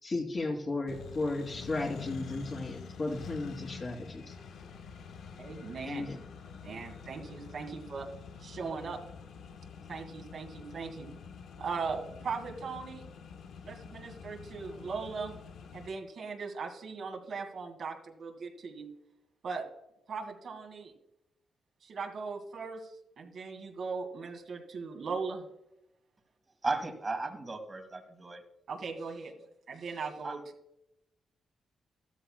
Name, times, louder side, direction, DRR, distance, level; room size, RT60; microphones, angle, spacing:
voice 1, 0.0-4.3 5.8-6.2, left 2 dB, 40° left, -1 dB, 2.7 m, -34 dB
Accelerating revving vroom, 0.9-15.9, left 6 dB, 85° left, 1.2 m, -47 dB
voice 2, 5.4-6.1 6.6-8.1 8.4-9.0 9.9-11.1 11.6-13.0 13.6-15.3 15.7-18.9 19.4-19.7 20.1-20.9 21.8-22.9 23.2-25.5 28.7-29.3 29.7-30.4, right 5 dB, 65° right, 1 dB, 2.0 m, -39 dB
voice 3, 26.6-28.4 30.2-30.4, right 3 dB, 25° right, 6 dB, 1.8 m, -35 dB
13.5 x 13.5 x 2.2 m, 0.84 s
cardioid pair, 105°, 0 cm